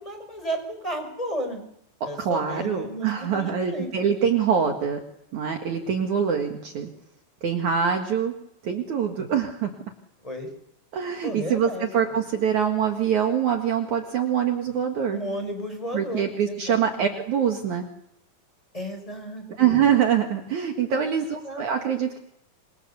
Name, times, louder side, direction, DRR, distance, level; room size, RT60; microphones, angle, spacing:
voice 1, 0.0-1.6 2.0-3.9 9.2-9.3 10.2-10.5 11.2-11.9 15.1-17.2 18.7-19.9 21.4-21.9, equal, 10° left, 5 dB, 5.4 m, -33 dB
voice 2, 2.2-5.0 5.3-6.9 7.4-8.3 8.6-9.7 10.9-15.2 15.9-17.9 19.6-22.2, right 8 dB, 60° right, 3 dB, 3.0 m, -24 dB
28.0 x 25.5 x 7.0 m, 0.75 s
omnidirectional pair, 4.2 m